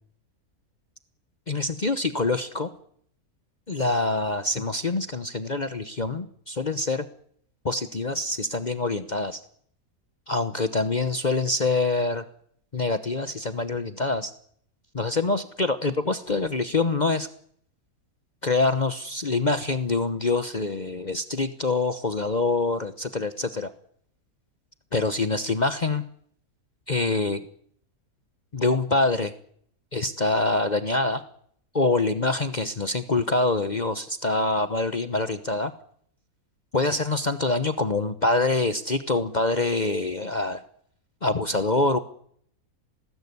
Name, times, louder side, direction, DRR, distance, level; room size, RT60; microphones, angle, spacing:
voice 1, 1.5-2.7 3.7-7.1 7.6-9.4 10.3-12.2 12.7-14.3 14.9-17.3 18.4-23.7 24.9-26.0 26.9-27.5 28.5-29.3 29.9-31.2 31.7-35.7 36.7-40.6 41.2-42.0, left 3 dB, 35° left, 10 dB, 1.1 m, -25 dB
21.0 x 19.0 x 9.6 m, 0.64 s
omnidirectional pair, 1.5 m